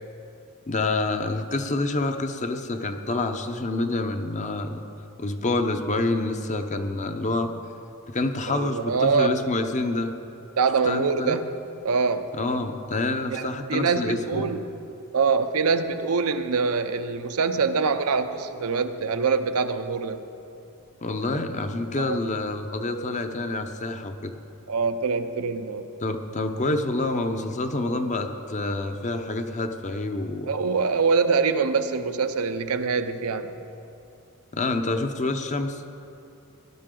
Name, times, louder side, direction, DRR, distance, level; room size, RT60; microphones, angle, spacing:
voice 1, 0.7-4.8 5.2-7.5 8.1-10.1 10.8-11.4 12.3-14.5 21.0-24.3 26.0-30.5 34.5-35.8, left 2 dB, 35° left, 7 dB, 0.7 m, -27 dB
voice 2, 8.5-9.3 10.6-11.4 11.8-12.3 13.3-14.6 15.1-20.2 22.0-22.2 24.7-25.9 30.5-33.5, right 5 dB, 80° right, 8 dB, 0.7 m, -24 dB
17.5 x 11.5 x 3.8 m, 2.7 s
head